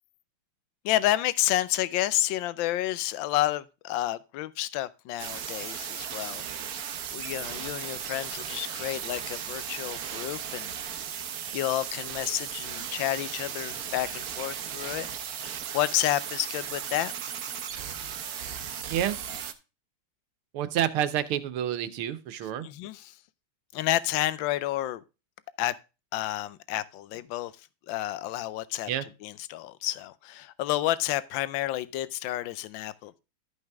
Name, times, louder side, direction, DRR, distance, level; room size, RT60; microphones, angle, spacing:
voice 1, 0.8-10.7 11.5-15.1 15.4-17.1 22.6-23.1 23.7-25.0 25.6-25.7 26.1-27.5 27.9-33.2, left 14 dB, 70° left, 1.3 m, -30 dB
sound 1, 5.2-19.5, right 8 dB, 60° right, 1.1 m, -36 dB
voice 2, 20.5-22.7 28.9-29.1, right 11 dB, 85° right, 1.8 m, -28 dB
13.0 x 5.5 x 3.4 m
omnidirectional pair, 2.3 m